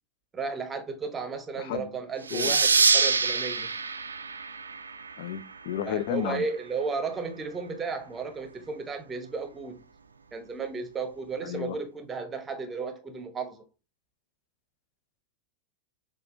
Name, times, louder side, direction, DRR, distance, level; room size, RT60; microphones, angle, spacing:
voice 1, 0.3-3.7 5.8-9.8 10.3-13.6, right 4 dB, 20° right, 0.8 m, -34 dB
voice 2, 1.6-2.0 2.3-2.6 5.2-6.5 11.4-11.8, left 11 dB, 50° left, 0.3 m, -32 dB
sound 1, 2.3-5.5, right 5 dB, 75° right, 0.3 m, -25 dB
6.5 x 2.4 x 2.7 m
figure-of-eight pair, 90°, 0 cm